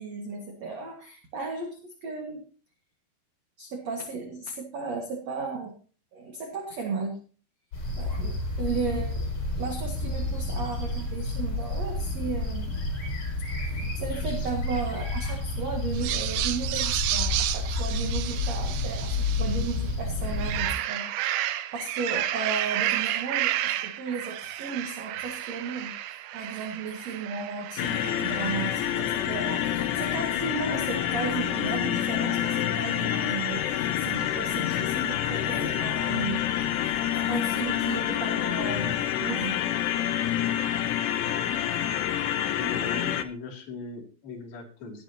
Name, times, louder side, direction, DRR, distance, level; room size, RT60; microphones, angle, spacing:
voice 1, 0.0-2.5 3.6-5.7 6.1-7.2 8.0-9.3 9.6-12.8 13.6-36.4 36.8-39.6, right 4 dB, 50° right, 2 dB, 2.3 m, -35 dB
sound 1, 7.7-20.7, left 2 dB, 35° left, 5.5 m, -30 dB
voice 2, 8.7-9.0 35.6-35.7 37.6-37.8 42.5-45.0, left 4 dB, 55° left, -1 dB, 4.5 m, -39 dB
sound 2, 15.9-19.8 20.2-28.9, right 13 dB, 85° right, 2.1 m, -31 dB
sound 3, 27.8-43.3, left 11 dB, 75° left, 3.1 m, -27 dB
19.0 x 9.4 x 2.9 m, 0.38 s
omnidirectional pair, 5.2 m